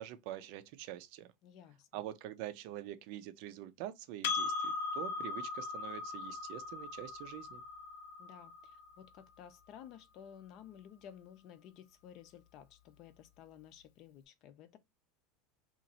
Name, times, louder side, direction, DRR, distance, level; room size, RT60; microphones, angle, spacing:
voice 1, 0.0-1.3 1.9-7.6, right 13 dB, 55° right, 0.5 m, -45 dB
voice 2, 1.4-2.1 8.2-14.8, left 9 dB, 40° left, 0.5 m, -54 dB
Percussion, 4.2-9.1, left 4 dB, 85° left, 0.6 m, -39 dB
2.9 x 2.5 x 4.0 m
supercardioid pair, 160°, 0 cm